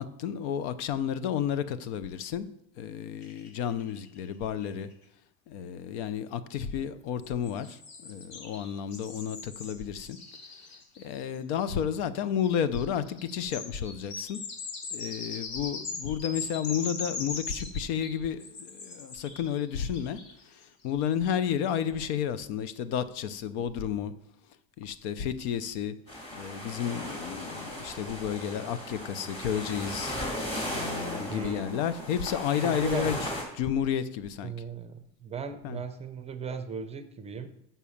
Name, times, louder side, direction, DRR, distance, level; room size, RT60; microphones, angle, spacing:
voice 1, 0.0-2.5 2.8-4.9 5.5-10.2 10.5-14.4 14.9-24.1 24.8-26.0 26.3-30.2 30.7-34.5 35.6-35.8, left 8 dB, 75° left, 0.7 m, -32 dB
sound 1, 3.2-4.3 4.6-4.7 4.9-5.0 7.2-11.8 12.4-20.6, left 4 dB, 55° left, 1.6 m, -40 dB
sound 2, 26.1-33.4, left 1 dB, 15° left, 2.2 m, -36 dB
voice 2, 31.3-31.8 32.6-33.2 34.4-37.5, right 6 dB, 20° right, 0.5 m, -37 dB
6.1 x 5.6 x 7.1 m
cardioid pair, 150°, 34 cm